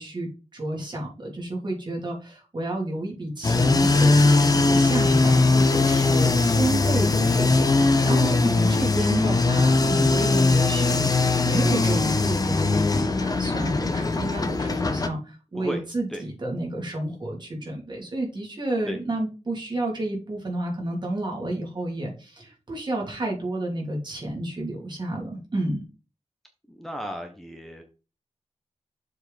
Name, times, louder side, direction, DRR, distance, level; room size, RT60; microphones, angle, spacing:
voice 1, 0.0-25.9, right 1 dB, 40° right, -1 dB, 2.9 m, -30 dB
sound 1, 3.4-15.1, left 3 dB, 35° left, 0.8 m, -20 dB
voice 2, 26.7-27.8, equal, ahead, 3 dB, 1.0 m, -35 dB
7.3 x 4.7 x 4.1 m, 0.33 s
wide cardioid pair, 145°, 12 cm